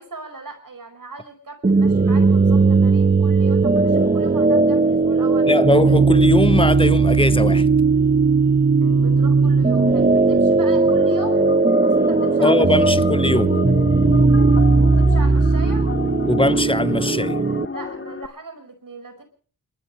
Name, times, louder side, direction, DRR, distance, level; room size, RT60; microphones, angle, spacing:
voice 1, 0.0-5.5 9.0-11.4 11.8-12.9 14.7-15.8 17.7-19.2, right 3 dB, 60° right, 5.2 m, -39 dB
sound 1, 1.6-17.7, right 4 dB, 25° right, 1.1 m, -17 dB
voice 2, 5.5-7.7 12.4-13.6 16.3-17.4, left 2 dB, 15° left, 0.7 m, -20 dB
Bass guitar, 8.8-13.2, left 4 dB, 60° left, 2.1 m, -37 dB
sound 2, 10.9-18.3, left 5 dB, 35° left, 1.1 m, -32 dB
28.5 x 12.5 x 3.1 m
cardioid pair, 45°, 37 cm